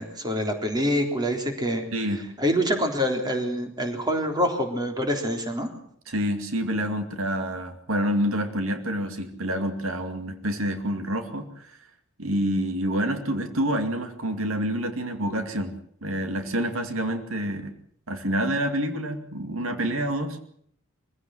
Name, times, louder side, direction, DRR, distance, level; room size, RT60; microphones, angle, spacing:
voice 1, 0.0-1.8 2.4-5.7, equal, 20° right, 3 dB, 3.8 m, -26 dB
voice 2, 1.9-2.2 6.1-11.7 12.2-17.7 18.1-20.4, equal, 80° right, 7 dB, 2.4 m, -27 dB
23.5 x 16.0 x 7.8 m, 0.64 s
head